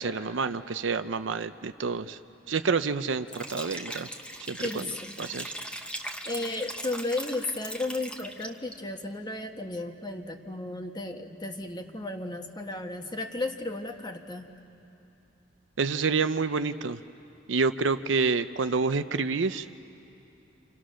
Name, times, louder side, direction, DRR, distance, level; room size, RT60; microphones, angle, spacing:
voice 1, 0.0-2.2 2.5-4.1 4.5-4.9 5.2-5.5 15.8-17.0 17.5-19.7, right 4 dB, 70° right, 11 dB, 0.6 m, -28 dB
Liquid, 3.3-8.7, equal, 5° left, 1.3 m, -39 dB
voice 2, 4.6-5.2 6.2-14.5, left 2 dB, 20° left, 4 dB, 1.4 m, -34 dB
29.0 x 27.5 x 6.4 m, 2.8 s
head